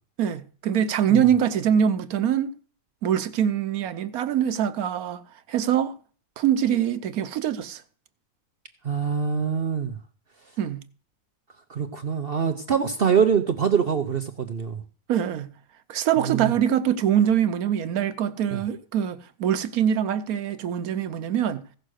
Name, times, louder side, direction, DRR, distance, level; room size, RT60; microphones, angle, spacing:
voice 1, 0.2-2.5 3.0-5.2 5.5-5.9 6.4-7.8 10.6-10.8 15.1-15.5 15.9-21.7, right 9 dB, 85° right, 1.3 m, -23 dB
voice 2, 8.8-9.9 11.7-14.8 16.2-16.5 18.5-18.6, right 7 dB, 50° right, 0.9 m, -24 dB
16.0 x 6.5 x 6.4 m
omnidirectional pair, 1.5 m